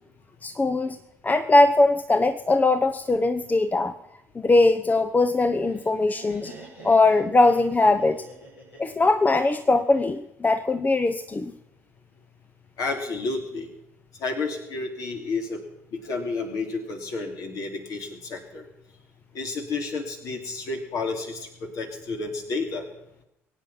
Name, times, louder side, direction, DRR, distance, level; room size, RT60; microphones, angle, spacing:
voice 1, 0.4-1.0 1.2-3.9 4.3-6.5 6.8-8.2 8.8-11.5, left 2 dB, 25° left, 10 dB, 1.0 m, -21 dB
Laughter, 5.1-10.2, right 2 dB, 80° left, 5.5 m, -46 dB
voice 2, 12.8-13.7 14.2-15.6 16.0-18.6 19.3-22.8, left 3 dB, 55° left, 2 dB, 3.2 m, -31 dB
22.5 x 9.2 x 5.9 m, 0.86 s
figure-of-eight pair, 50°, 7 cm